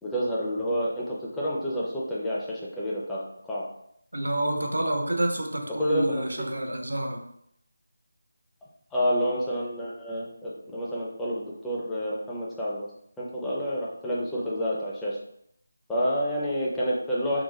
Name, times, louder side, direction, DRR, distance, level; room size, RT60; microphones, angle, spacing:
voice 1, 0.0-3.2 3.5-3.6 5.8-6.3 8.9-12.9 13.2-15.2 15.9-17.4, equal, 5° left, -7 dB, 0.4 m, -29 dB
voice 2, 4.1-7.2, right 1 dB, 65° right, 3 dB, 0.7 m, -28 dB
3.7 x 2.4 x 2.8 m, 0.71 s
figure-of-eight pair, 160°, 0 cm